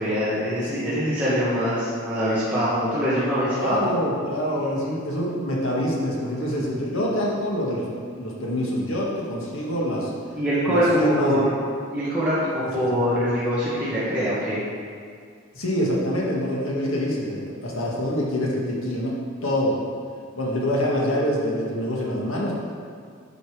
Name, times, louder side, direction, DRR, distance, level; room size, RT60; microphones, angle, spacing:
voice 1, 0.0-3.8 4.6-5.0 10.4-11.4 11.9-14.6, equal, 5° right, -12 dB, 1.6 m, -24 dB
voice 2, 0.7-1.0 3.5-7.9 8.2-10.1 10.7-11.4 12.7-13.0 15.5-19.1 19.4-19.8 20.4-22.5, equal, 85° left, -4 dB, 1.9 m, -25 dB
9.9 x 5.4 x 4.9 m, 2.2 s
head